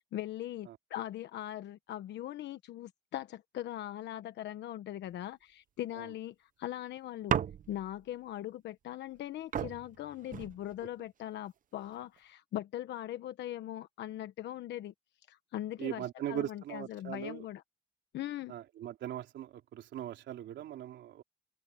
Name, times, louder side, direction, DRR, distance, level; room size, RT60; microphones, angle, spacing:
voice 1, 0.1-7.4 7.7-14.9 15.3-17.6 18.1-18.5, left 13 dB, 70° left, 1.1 m, -40 dB
sound 1, 7.3-8.0 9.1-9.2 9.5-11.0 11.8-12.2, right 9 dB, 45° right, 0.7 m, -35 dB
voice 2, 15.8-17.5 18.5-21.2, right 12 dB, 75° right, 3.6 m, -40 dB
cardioid pair, 95°, 19 cm